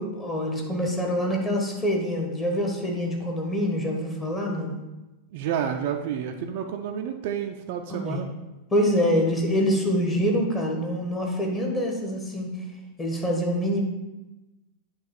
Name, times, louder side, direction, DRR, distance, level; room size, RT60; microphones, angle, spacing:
voice 1, 0.0-4.8 7.9-8.3 8.7-12.5 13.0-13.8, equal, 20° left, 0 dB, 1.2 m, -25 dB
voice 2, 5.3-8.3, right 8 dB, 50° right, 5 dB, 0.4 m, -30 dB
8.3 x 3.1 x 4.4 m, 1.0 s
figure-of-eight pair, 90°, 0 cm